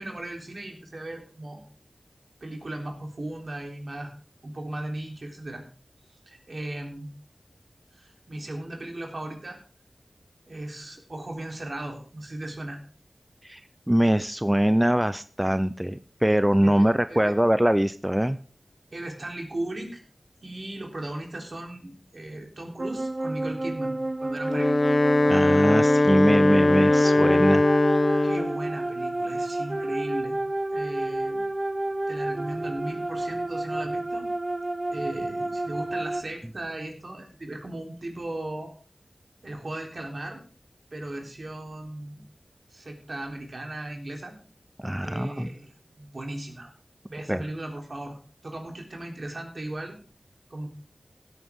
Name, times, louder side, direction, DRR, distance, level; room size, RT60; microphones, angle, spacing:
voice 1, 0.0-1.6 2.4-4.1 4.4-5.6 6.3-7.1 7.9-9.6 10.5-12.8 16.6-17.3 18.9-20.0 20.4-24.8 28.2-30.4 30.7-31.4 32.1-34.3 34.9-38.7 39.4-40.4 40.9-42.3 42.7-44.3 45.0-46.7 47.1-48.2 48.4-50.0 50.5-50.7, right 1 dB, 55° right, 1 dB, 3.7 m, -37 dB
voice 2, 13.9-18.4 25.3-27.6 44.8-45.5 47.3-47.4, right 1 dB, 10° right, 12 dB, 0.6 m, -23 dB
sound 1, 22.8-36.2, right 2 dB, 35° right, 0.9 m, -30 dB
Wind instrument woodwind instrument, 24.4-28.6, left 2 dB, 40° left, 0.8 m, -20 dB
16.0 x 9.3 x 3.7 m, 0.38 s
wide cardioid pair, 65°, 0 cm